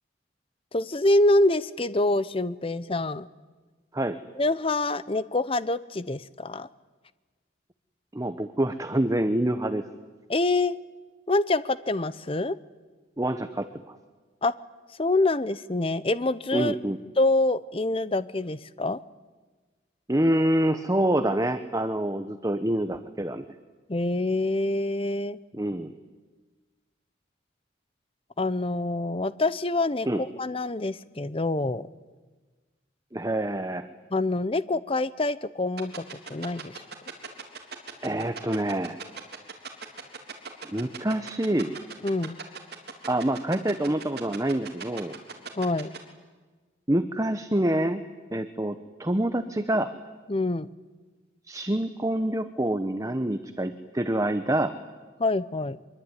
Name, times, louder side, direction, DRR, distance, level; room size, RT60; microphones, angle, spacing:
voice 1, 0.7-3.3 4.4-6.7 10.3-10.8 11.3-12.6 14.4-14.5 15.0-16.7 17.2-19.0 23.9-25.4 28.4-30.1 30.4-31.9 34.1-36.8 42.0-42.4 45.6-45.9 50.3-50.7 55.2-55.8, left 2 dB, 30° left, 16 dB, 0.7 m, -26 dB
voice 2, 8.1-9.9 13.2-14.0 16.5-17.0 20.1-23.4 25.5-25.9 30.1-30.2 33.1-33.9 38.0-39.0 40.6-41.8 43.1-45.1 46.9-48.0 48.3-49.9 51.4-54.7, right 1 dB, 15° right, 9 dB, 0.9 m, -26 dB
sound 1, 35.8-46.0, right 5 dB, 55° right, 3.7 m, -37 dB
24.0 x 22.5 x 9.9 m, 1.3 s
head